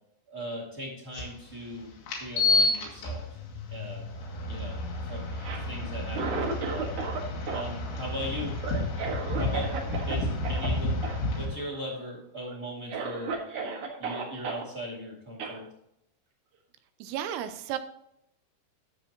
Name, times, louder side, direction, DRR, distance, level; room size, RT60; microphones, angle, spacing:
voice 1, 0.3-1.9 2.2-3.3 3.7-4.0 4.5-4.8 5.1-5.3 5.7-6.9 7.5-8.9 9.3-10.9 11.3-13.4 14.0-15.6, equal, 25° right, -6 dB, 1.7 m, -38 dB
sound 1, 1.1-1.2 2.1-11.5, left 2 dB, 85° left, 4.8 m, -30 dB
Cough, 5.3-7.2 7.5-10.2 10.4-10.7 11.0-11.2 11.5-12.0 12.5-12.6 12.9-14.6 15.4-15.6, right 4 dB, 55° right, 2.5 m, -34 dB
voice 2, 17.0-17.8, right 10 dB, 80° right, 10 dB, 2.9 m, -33 dB
13.0 x 7.5 x 3.0 m, 0.79 s
omnidirectional pair, 5.5 m